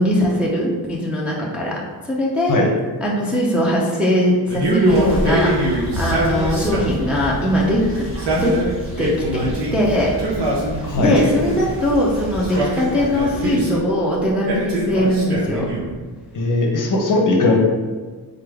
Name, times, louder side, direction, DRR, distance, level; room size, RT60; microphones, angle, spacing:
voice 1, 0.0-1.8 2.0-2.6 3.0-8.1 8.3-8.6 9.0-10.1 10.9-15.7, left 1 dB, 5° right, -5 dB, 0.5 m, -20 dB
Male speech man speaking, 4.5-7.1 8.0-9.8 10.2-11.5 12.3-13.9 14.5-16.0, right 2 dB, 80° right, 1.1 m, -23 dB
sound 1, 4.8-13.5, right 1 dB, 30° right, 1.4 m, -30 dB
voice 2, 10.8-11.2 16.3-17.6, left 2 dB, 50° left, 1 dB, 0.7 m, -18 dB
3.7 x 3.6 x 3.4 m, 1.4 s
wide cardioid pair, 180°, 41 cm